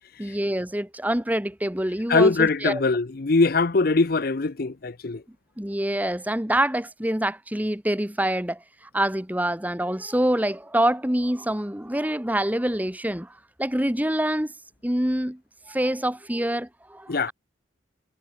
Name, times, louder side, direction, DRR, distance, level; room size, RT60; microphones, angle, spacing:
voice 1, 0.2-2.8 5.6-8.6 8.9-13.3 13.6-14.5 14.8-15.4 15.7-17.3, right 1 dB, 10° right, 1.3 m, -26 dB
voice 2, 2.1-5.2 17.1-17.3, left 3 dB, 50° left, 0.7 m, -22 dB
head